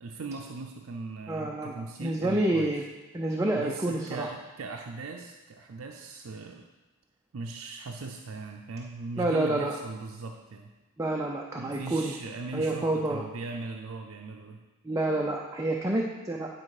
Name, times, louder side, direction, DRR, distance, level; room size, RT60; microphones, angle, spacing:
voice 1, 0.0-2.7 3.3-6.7 7.3-10.7 11.6-14.7, right 3 dB, 70° right, 2 dB, 0.5 m, -39 dB
voice 2, 1.3-1.7 2.0-2.8 3.1-4.3 9.2-9.7 11.0-12.1 12.5-13.3 14.8-16.5, right 1 dB, 15° right, -1 dB, 0.5 m, -28 dB
9.9 x 4.3 x 4.9 m, 1.1 s
head